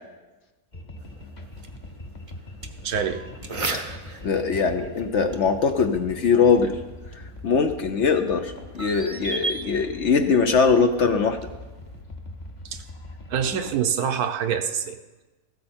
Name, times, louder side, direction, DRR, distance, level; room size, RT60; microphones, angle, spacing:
sound 1, 0.7-13.8, left 2 dB, 30° left, 1.1 m, -42 dB
sound 2, 1.0-12.0, right 3 dB, 25° right, 0.8 m, -38 dB
voice 1, 2.8-3.3 12.7-12.8 13.3-15.0, right 8 dB, 70° right, 8 dB, 1.3 m, -25 dB
voice 2, 4.2-6.8 7.4-11.4, left 5 dB, 55° left, 7 dB, 0.9 m, -21 dB
15.0 x 13.5 x 4.4 m, 1.2 s
omnidirectional pair, 1.7 m